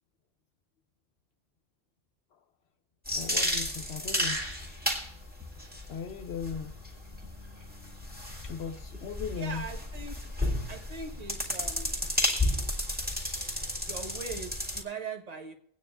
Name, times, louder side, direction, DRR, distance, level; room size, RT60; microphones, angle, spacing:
sound 1, 3.1-14.8, left 1 dB, 10° right, 2.2 m, -32 dB
voice 1, 3.2-4.4 5.9-6.7 8.4-9.7, left 6 dB, 80° left, 4 dB, 0.9 m, -37 dB
voice 2, 9.4-10.2 10.7-12.2 13.9-15.5, right 4 dB, 40° right, 3 dB, 1.3 m, -40 dB
23.0 x 9.2 x 2.5 m, 0.69 s
omnidirectional pair, 1.1 m